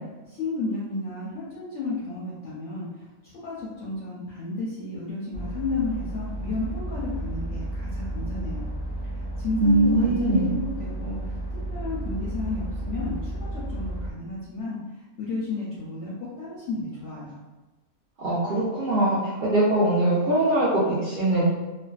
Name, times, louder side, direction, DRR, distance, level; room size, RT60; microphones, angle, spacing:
voice 1, 0.3-8.7 9.4-11.2 11.5-14.8 15.2-17.4, left 3 dB, 65° left, -6 dB, 0.8 m, -32 dB
sound 1, 5.3-14.1, right 1 dB, 30° left, 0.5 m, -32 dB
voice 2, 9.6-10.5 18.2-21.5, right 2 dB, 80° right, -7 dB, 0.4 m, -22 dB
2.5 x 2.2 x 2.3 m, 1.1 s
omnidirectional pair, 1.5 m